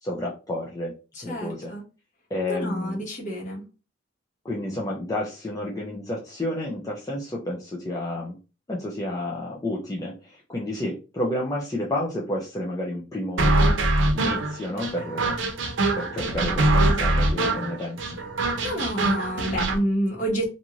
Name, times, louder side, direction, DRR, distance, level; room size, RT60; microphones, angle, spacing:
voice 1, 0.0-1.0 1.2-1.7 2.3-3.0 4.4-8.4 8.7-13.6 14.1-15.4 15.9-18.2, left 1 dB, 20° left, -4 dB, 0.5 m, -30 dB
voice 2, 1.1-1.8 2.5-3.6 18.6-20.5, equal, 40° left, -3 dB, 1.2 m, -28 dB
sound 1, 13.4-19.8, right 2 dB, 85° right, 0.6 m, -23 dB
2.6 x 2.4 x 3.0 m, 0.32 s
head